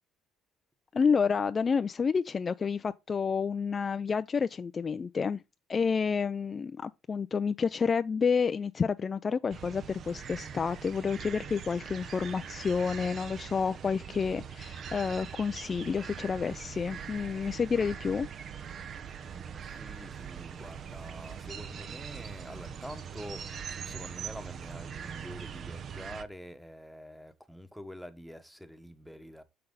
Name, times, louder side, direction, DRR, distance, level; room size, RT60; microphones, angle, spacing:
voice 1, 0.9-5.4 5.7-18.3, left 5 dB, 35° left, 0.4 m, -29 dB
sound 1, 9.5-26.2, right 7 dB, 50° right, 0.8 m, -42 dB
voice 2, 19.1-23.4 23.8-29.4, equal, ahead, 1.2 m, -46 dB
6.5 x 6.0 x 3.9 m
supercardioid pair, 70°, 0 cm